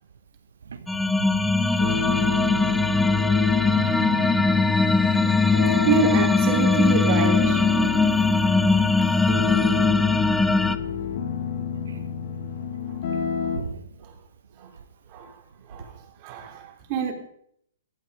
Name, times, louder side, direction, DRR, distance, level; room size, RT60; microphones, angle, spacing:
voice 1, 0.7-1.7 3.2-3.4 5.3-5.4 5.7-5.8 10.7-11.0 11.9-12.0 13.5-13.9, right 5 dB, 85° right, 1.4 m, -38 dB
sound 1, 0.9-10.8, left 3 dB, 5° left, 0.6 m, -20 dB
sound 2, 1.8-13.6, left 6 dB, 50° left, 2.1 m, -30 dB
voice 2, 5.6-7.6 9.1-9.3 9.7-9.8 14.0-14.1 14.6-14.7 15.1-15.3 15.7-15.9 16.2-17.1, right 4 dB, 35° right, 3.3 m, -27 dB
15.5 x 13.0 x 5.0 m
hypercardioid pair, 155°, 0 cm